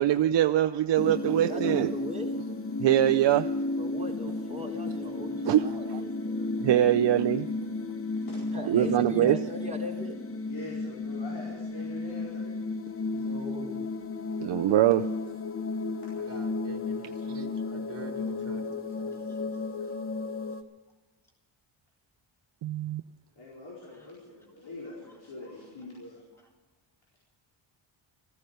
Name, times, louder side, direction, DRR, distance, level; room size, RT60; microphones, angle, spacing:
voice 1, 0.0-1.9 2.8-3.5 5.5-6.0 6.6-7.4 8.7-9.4 14.4-15.0 22.6-23.0, right 12 dB, 60° right, 7 dB, 0.6 m, -23 dB
sound 1, 1.0-20.6, left 3 dB, 30° left, 1.0 m, -33 dB
voice 2, 1.5-2.3 3.7-6.5 8.5-10.2 13.1-13.9, left 1 dB, 15° right, -2 dB, 3.8 m, -40 dB
voice 3, 4.8-5.5 5.9-6.4 17.0-17.2 18.0-20.0 23.8-24.1 25.0-25.2, equal, 5° left, 1 dB, 2.0 m, -56 dB
voice 4, 10.4-12.6 16.2-16.3 23.4-26.2, left 3 dB, 70° left, -5 dB, 4.6 m, -44 dB
voice 5, 16.2-18.6, right 2 dB, 30° right, 2 dB, 3.3 m, -46 dB
14.5 x 14.5 x 6.6 m, 1.3 s
cardioid pair, 90°, 48 cm